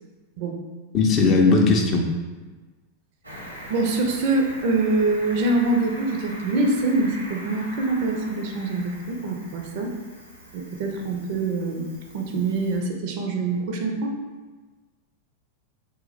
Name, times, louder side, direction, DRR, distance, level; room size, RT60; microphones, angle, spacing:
voice 1, 0.9-2.1, left 3 dB, 30° left, 2 dB, 0.4 m, -18 dB
Cricket, 3.2-12.8, right 1 dB, 85° right, 0.7 m, -42 dB
voice 2, 3.7-9.9 10.5-11.9 12.1-14.1, right 2 dB, 50° right, 2 dB, 0.4 m, -24 dB
2.3 x 2.0 x 3.8 m, 1.3 s
figure-of-eight pair, 90°, 0 cm